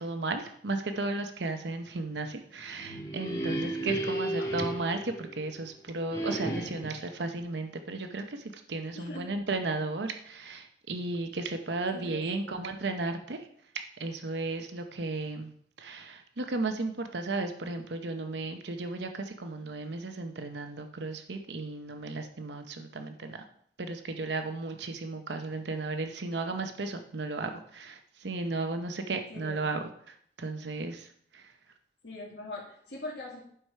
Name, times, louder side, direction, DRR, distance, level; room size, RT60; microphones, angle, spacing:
voice 1, 0.0-8.4 8.7-13.4 13.7-15.5 15.8-23.4 23.8-29.8 30.4-31.1, right 3 dB, 80° right, 6 dB, 0.8 m, -34 dB
sound 1, 2.6-5.6 6.1-7.1, right 1 dB, 20° left, 1.6 m, -34 dB
voice 2, 4.2-4.5 8.9-9.4 11.9-12.7 29.3-29.6 32.0-33.4, left 2 dB, 85° left, -4 dB, 2.1 m, -42 dB
11.0 x 4.8 x 5.6 m, 0.64 s
head